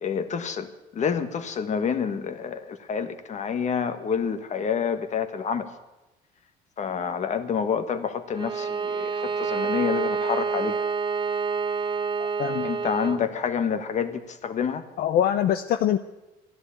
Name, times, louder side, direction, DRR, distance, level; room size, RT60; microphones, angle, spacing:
voice 1, 0.0-5.7 6.8-10.8 12.6-14.8, left 7 dB, 45° left, 9 dB, 1.5 m, -28 dB
Bowed string instrument, 8.3-13.3, right 5 dB, 30° right, 0.6 m, -28 dB
voice 2, 12.4-12.7 13.0-13.2 15.0-16.0, left 10 dB, 65° left, 9 dB, 0.7 m, -24 dB
14.0 x 11.0 x 8.5 m, 0.99 s
cardioid pair, 110°, 17 cm